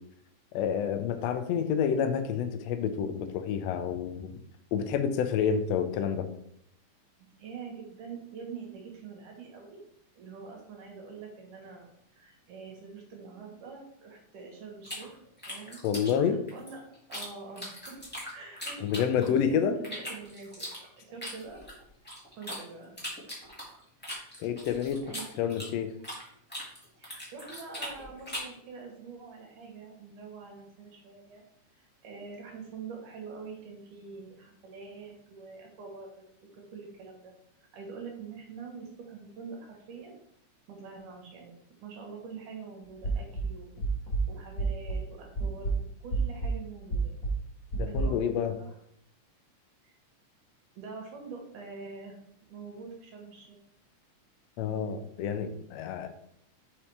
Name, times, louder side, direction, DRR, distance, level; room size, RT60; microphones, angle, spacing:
voice 1, 0.5-4.3 4.7-6.3 15.8-16.4 18.8-19.8 24.4-25.0 25.4-25.9 47.8-48.6 54.6-56.1, left 7 dB, 85° left, 8 dB, 1.5 m, -28 dB
voice 2, 7.2-9.8 10.2-15.1 15.5-15.8 16.3-16.8 17.1-18.0 18.3-18.8 19.1-20.7 20.9-21.7 22.4-22.9 25.1-25.3 27.0-31.4 31.7-37.3 37.7-40.1 40.7-41.5 41.8-43.7 44.3-45.7 46.0-47.1 47.9-48.3 48.6-48.7 49.8-50.0 50.8-52.2 52.5-53.6, right 5 dB, 80° right, 0 dB, 2.7 m, -45 dB
sound 1, 14.8-17.3 17.6-19.4 19.8-22.6 23.0-26.2 26.5-28.6, equal, 5° left, 1.0 m, -40 dB
sound 2, 43.0-45.1 45.4-48.0, right 3 dB, 30° left, 2.5 m, -30 dB
5.6 x 5.4 x 3.3 m, 0.70 s
omnidirectional pair, 3.6 m